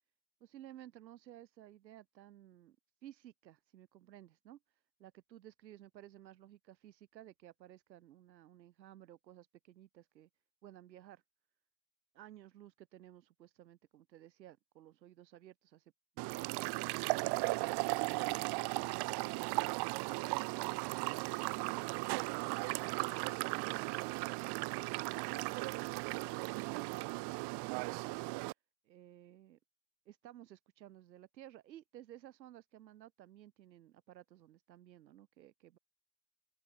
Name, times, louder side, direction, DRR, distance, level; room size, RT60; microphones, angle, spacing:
voice 1, 0.4-2.8 3.0-10.3 10.6-11.2 12.1-17.7 22.9-28.5 28.8-29.6 30.1-35.8, right 12 dB, 90° right, 6.4 m, -56 dB
sound 1, 16.2-28.5, right 26 dB, 50° right, 3.2 m, -36 dB
open air
supercardioid pair, 120°, 50 cm